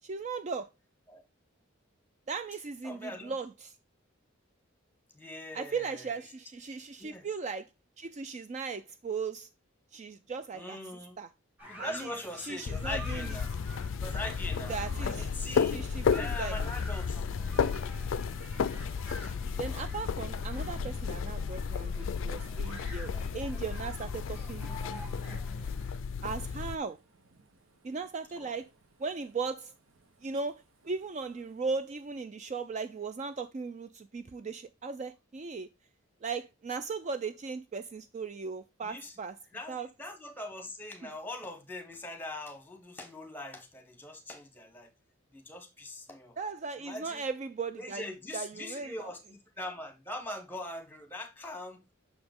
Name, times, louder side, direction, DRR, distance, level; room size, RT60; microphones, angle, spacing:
voice 1, 0.0-0.7 2.3-3.7 5.5-7.7 8.0-9.5 9.9-10.8 11.2-11.3 11.8-12.1 12.4-13.3 14.7-15.3 15.7-16.6 19.6-25.0 25.6-25.7 26.2-27.0 27.8-28.7 29.0-29.7 30.2-35.7 36.2-39.4 39.7-39.9 41.0-41.1 46.4-49.1, right 4 dB, 35° right, 0.3 m, -37 dB
voice 2, 2.8-3.3 5.1-6.1 7.0-7.3 10.5-11.2 11.7-13.5 14.0-14.7 15.0-15.8 16.1-17.2 28.4-28.5 38.8-39.2 39.5-44.9 45.3-46.4 46.8-47.2 47.8-51.8, left 1 dB, 10° left, 1.2 m, -42 dB
sound 1, 11.6-26.0, equal, 5° right, 2.2 m, -49 dB
sound 2, 12.7-26.7, left 6 dB, 70° left, 0.4 m, -33 dB
Thunder, 14.4-32.2, right 2 dB, 75° right, 1.0 m, -56 dB
6.3 x 4.9 x 3.6 m
head